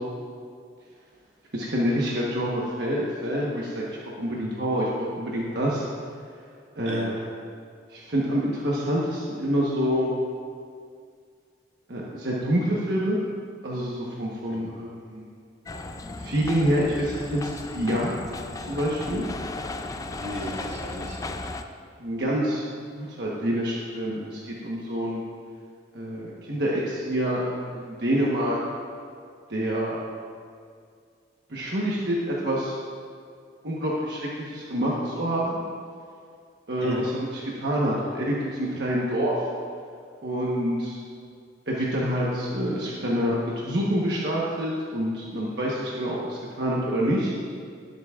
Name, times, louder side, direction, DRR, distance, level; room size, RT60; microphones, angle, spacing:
voice 1, 1.5-3.8 4.2-5.8 6.8-7.2 7.9-10.1 11.9-13.2 13.6-15.3 16.2-18.1 18.6-19.2 22.0-22.6 22.9-25.2 25.9-28.6 29.5-30.0 31.5-32.8 33.6-35.6 36.7-39.3 40.2-41.0 41.7-47.3, equal, 60° right, -5 dB, 1.2 m, -27 dB
sound 1, 15.7-21.6, left 2 dB, 20° left, 0.4 m, -35 dB
voice 2, 20.2-21.4 36.8-37.1, right 1 dB, 85° right, -2 dB, 1.9 m, -36 dB
18.0 x 8.0 x 2.5 m, 2.2 s
head